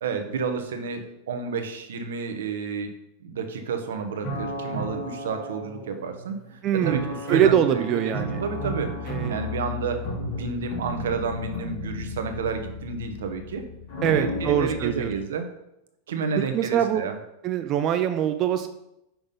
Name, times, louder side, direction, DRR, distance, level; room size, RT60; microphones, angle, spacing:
voice 1, 0.0-2.9 3.2-7.0 7.3-13.6 14.1-15.5 16.1-17.1, right 5 dB, 85° right, 6 dB, 0.9 m, -31 dB
sound 1, 4.2-6.3 6.8-15.1, left 1 dB, 50° left, 2.5 m, -33 dB
voice 2, 6.6-7.0 7.3-8.4 9.1-9.4 14.0-15.1 16.4-17.0 17.4-18.7, right 10 dB, 40° right, 8 dB, 0.4 m, -23 dB
5.9 x 3.5 x 5.3 m, 0.85 s
supercardioid pair, 130°, 0 cm